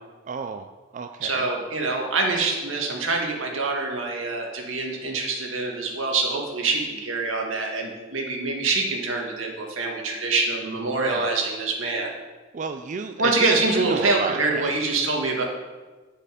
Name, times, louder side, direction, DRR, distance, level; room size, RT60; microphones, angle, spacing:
voice 1, 0.3-0.7 0.9-1.5 10.9-11.3 12.5-14.7, right 5 dB, 40° right, 7 dB, 0.4 m, -31 dB
voice 2, 1.2-12.1 13.2-15.4, right 3 dB, 85° right, 0 dB, 1.8 m, -25 dB
9.7 x 6.5 x 5.0 m, 1.3 s
head